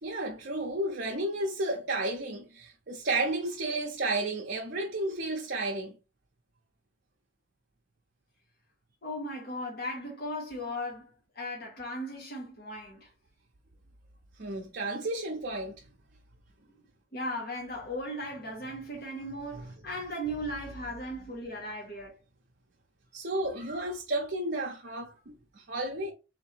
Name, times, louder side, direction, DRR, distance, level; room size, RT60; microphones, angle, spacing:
voice 1, 0.0-5.9 14.4-15.8 23.1-26.1, right 2 dB, 55° right, 0.7 m, -32 dB
voice 2, 9.0-13.1 17.1-22.2, equal, 50° left, 1.4 m, -37 dB
3.6 x 3.0 x 4.4 m
head